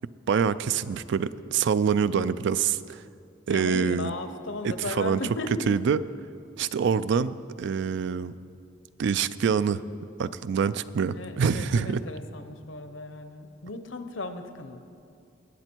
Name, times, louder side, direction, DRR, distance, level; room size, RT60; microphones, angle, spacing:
voice 1, 0.3-3.0 3.5-4.1 4.6-5.2 5.7-6.0 6.6-8.3 9.0-9.8 10.2-12.0, right 6 dB, 65° right, 16 dB, 0.3 m, -25 dB
voice 2, 3.5-5.7 11.1-14.8, left 2 dB, 70° left, 9 dB, 0.8 m, -36 dB
20.0 x 7.8 x 4.5 m, 2.4 s
head